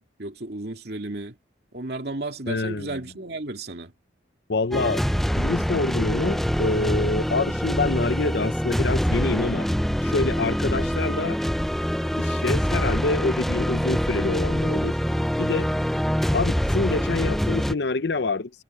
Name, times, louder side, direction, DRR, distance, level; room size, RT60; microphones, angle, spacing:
voice 1, 0.0-1.4 1.7-3.9, right 2 dB, 55° right, 2.5 m, -33 dB
voice 2, 2.5-3.0 4.5-5.0 5.4-9.7 10.0-11.4 12.1-15.0 15.4-15.7 16.3-18.5, left 3 dB, 60° left, 0.7 m, -26 dB
sound 1, 4.7-17.7, equal, ahead, 0.4 m, -25 dB
head